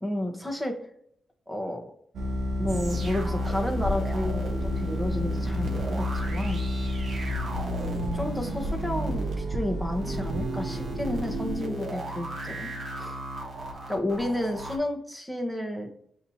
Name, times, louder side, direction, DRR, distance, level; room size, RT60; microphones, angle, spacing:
voice 1, 0.0-0.7 1.5-1.8 2.6-7.0 8.1-12.7 13.0-13.2 13.9-15.9, left 1 dB, ahead, 3 dB, 0.9 m, -31 dB
sound 1, 2.1-11.5, equal, 70° right, 0.6 m, -30 dB
sound 2, 2.7-14.8, right 1 dB, 50° right, 1.1 m, -37 dB
5.8 x 2.8 x 2.7 m, 0.68 s
cardioid pair, 90°, 0 cm